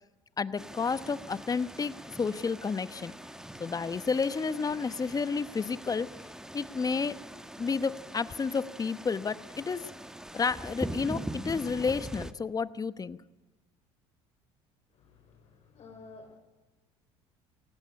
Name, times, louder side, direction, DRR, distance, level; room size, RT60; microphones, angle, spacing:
voice 1, 0.4-3.1 3.6-6.1 6.5-7.1 7.6-9.9 10.3-13.2, left 5 dB, 25° left, 15 dB, 1.0 m, -31 dB
sound 1, 0.6-12.3, right 1 dB, 5° right, 1.3 m, -42 dB
voice 2, 14.9-16.4, left 3 dB, 50° left, 3 dB, 4.7 m, -52 dB
18.0 x 17.0 x 9.8 m, 1.1 s
hypercardioid pair, 70°, 14 cm